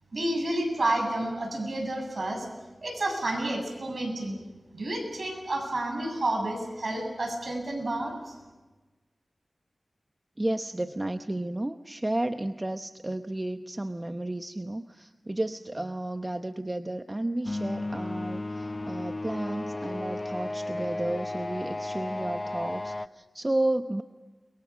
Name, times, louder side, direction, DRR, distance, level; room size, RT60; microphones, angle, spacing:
voice 1, 0.1-2.5 2.8-4.4 4.7-8.3, right 1 dB, 60° right, 3 dB, 7.7 m, -30 dB
voice 2, 10.4-24.0, right 1 dB, 25° right, 7 dB, 0.9 m, -32 dB
sound 1, 17.4-23.1, left 2 dB, 35° left, 0.7 m, -34 dB
30.0 x 22.5 x 6.1 m, 1.2 s
cardioid pair, 50°, 0 cm